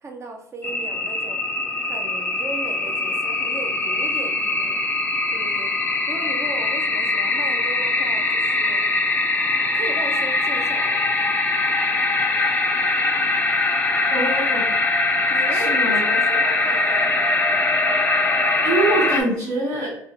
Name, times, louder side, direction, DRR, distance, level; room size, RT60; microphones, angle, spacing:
voice 1, 0.0-1.4 1.8-4.8 5.3-5.8 6.1-8.9 9.7-11.2 15.3-17.1, right 3 dB, 40° right, 3 dB, 0.5 m, -36 dB
sound 1, 0.6-19.2, left 2 dB, 20° left, 0.4 m, -22 dB
voice 2, 14.1-14.7 15.5-16.2 18.6-19.9, right 2 dB, 75° right, -10 dB, 1.2 m, -24 dB
2.5 x 2.1 x 2.7 m, 0.78 s
supercardioid pair, 70°, 8 cm